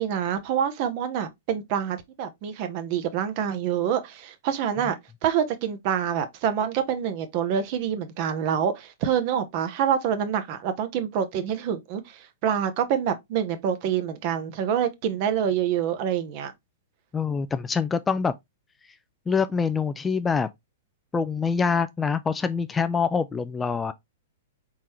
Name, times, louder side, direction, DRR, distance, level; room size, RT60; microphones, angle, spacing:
voice 1, 0.0-16.5, right 8 dB, 45° right, 0.9 m, -26 dB
voice 2, 17.1-18.3 19.3-20.5 21.1-23.9, left 5 dB, 15° left, 0.4 m, -25 dB
4.3 x 3.7 x 3.1 m
hypercardioid pair, 115°, 0 cm